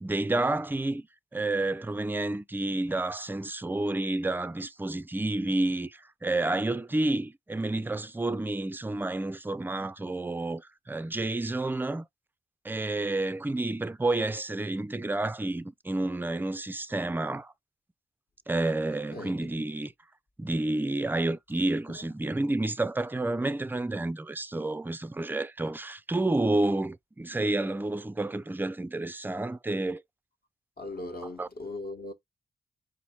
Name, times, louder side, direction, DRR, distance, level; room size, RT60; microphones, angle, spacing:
voice 1, 0.0-1.1 1.3-12.0 12.6-17.5 18.5-19.9 20.4-30.0 31.4-31.5, right 2 dB, 10° right, 0.4 m, -30 dB
voice 2, 19.1-19.7 21.9-22.0 30.8-32.1, left 2 dB, 45° left, 1.1 m, -39 dB
4.3 x 2.6 x 4.2 m
cardioid pair, 50°, 21 cm